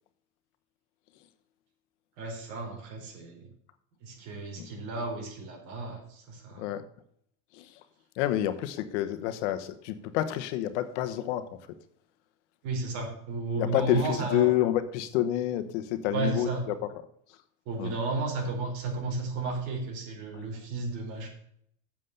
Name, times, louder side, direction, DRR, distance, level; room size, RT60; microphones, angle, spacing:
voice 1, 2.2-3.5 4.0-6.8 12.6-14.5 16.1-16.6 17.6-21.3, right 3 dB, 55° right, 4.6 m, -33 dB
voice 2, 8.2-11.5 13.6-16.5 17.8-17.9, left 12 dB, 75° left, 1.2 m, -28 dB
7.7 x 7.4 x 6.7 m
supercardioid pair, 150°, 35 cm